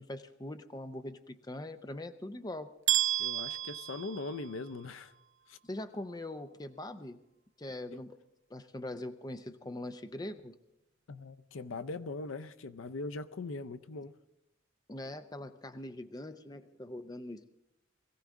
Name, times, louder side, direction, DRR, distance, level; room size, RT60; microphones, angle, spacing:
voice 1, 0.0-2.7 5.6-7.2 7.6-8.2 8.5-10.5 14.9-17.5, left 1 dB, 20° left, 0.5 m, -42 dB
sound 1, 2.9-4.9, right 13 dB, 60° right, 0.5 m, -32 dB
voice 2, 3.2-5.1 5.5-5.6 11.1-14.1, left 3 dB, 70° left, 0.6 m, -40 dB
21.5 x 15.5 x 3.7 m
head